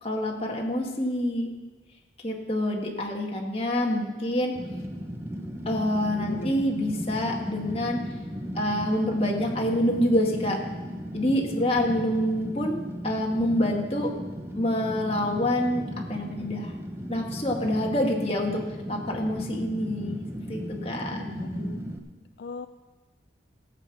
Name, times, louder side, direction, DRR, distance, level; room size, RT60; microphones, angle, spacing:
voice 1, 0.0-1.5 2.2-4.5 5.7-8.0 8.6-10.6 11.1-12.8 13.0-14.1 14.6-15.8 16.1-16.7 17.1-18.6 18.9-20.2 20.5-21.2, left 1 dB, 30° left, 0 dB, 1.9 m, -26 dB
Fire, 4.5-22.0, equal, 15° right, 1.0 m, -36 dB
voice 2, 5.9-6.6 21.1-21.8 22.4-22.7, left 4 dB, 65° left, 9 dB, 0.4 m, -40 dB
15.0 x 8.1 x 6.0 m, 1.3 s
head